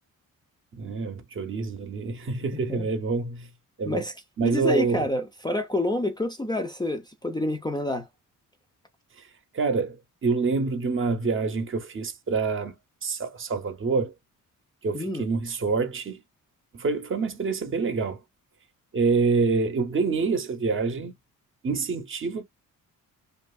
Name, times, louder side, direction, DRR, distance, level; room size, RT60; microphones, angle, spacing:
voice 1, 0.7-3.5 3.8-4.1 4.4-5.1 9.5-14.1 14.8-16.2 16.7-18.2 18.9-21.1 21.6-22.4, right 4 dB, 40° right, 0.7 m, -26 dB
voice 2, 4.4-8.1 14.9-15.3, left 1 dB, 15° left, 0.5 m, -28 dB
2.9 x 2.6 x 2.3 m
cardioid pair, 130°, 33 cm